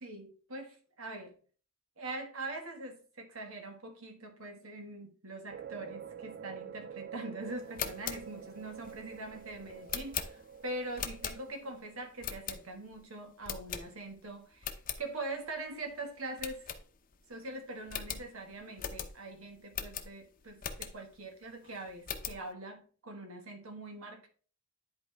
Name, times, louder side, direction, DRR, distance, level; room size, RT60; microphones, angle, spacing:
voice 1, 0.0-1.3 2.0-16.7 17.3-24.3, right 2 dB, 75° right, 1.7 m, -43 dB
sound 1, 5.5-12.9, right 7 dB, 50° right, 0.4 m, -48 dB
sound 2, 7.6-11.7 12.2-13.0 13.4-14.2 14.5-15.0 15.5-15.6 15.8-15.9 16.4-17.3 17.5-17.6 17.9-21.2 21.6-22.5, left 8 dB, 40° left, 0.8 m, -40 dB
10.5 x 4.4 x 3.4 m
head